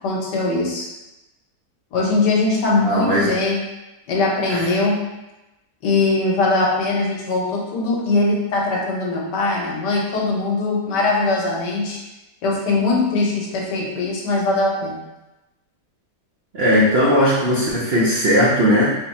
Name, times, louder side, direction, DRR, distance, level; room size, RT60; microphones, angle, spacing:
voice 1, 0.0-0.9 1.9-3.6 4.1-5.0 5.8-12.0 12.4-15.0, left 3 dB, 85° left, -2 dB, 1.5 m, -21 dB
voice 2, 2.8-3.4 4.5-4.6 16.5-18.9, equal, 55° right, -7 dB, 0.7 m, -17 dB
4.2 x 2.2 x 4.1 m, 0.98 s
omnidirectional pair, 1.8 m